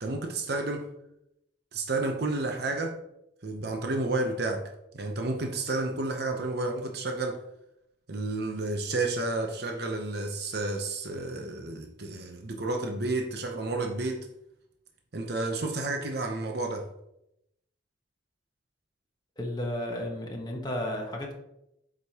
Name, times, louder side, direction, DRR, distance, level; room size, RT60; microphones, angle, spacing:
voice 1, 0.0-0.9 1.7-3.0 3.4-7.4 8.1-14.3 15.1-16.9, right 2 dB, 55° right, 0.8 m, -31 dB
voice 2, 19.4-21.3, left 1 dB, 20° left, 1.1 m, -33 dB
7.8 x 5.1 x 2.9 m
head